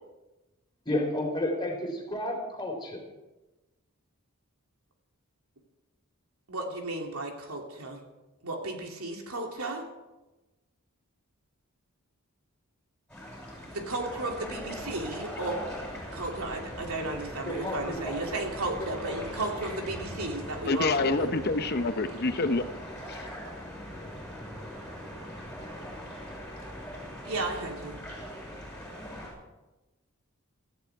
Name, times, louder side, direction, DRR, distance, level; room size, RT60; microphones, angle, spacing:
voice 1, 0.9-3.0 17.0-17.1 17.5-18.1 18.8-19.2, left 1 dB, 20° left, 1 dB, 3.7 m, -32 dB
voice 2, 6.5-8.0 8.4-9.8 13.7-15.6 16.1-21.3 27.2-28.0, right 2 dB, 75° right, 2 dB, 2.8 m, -34 dB
sound 1, 13.1-29.3, equal, 5° left, 6.7 m, -41 dB
voice 3, 20.7-22.6 23.1-23.2, left 3 dB, 45° left, 9 dB, 0.7 m, -27 dB
18.0 x 14.5 x 4.8 m, 1.1 s
head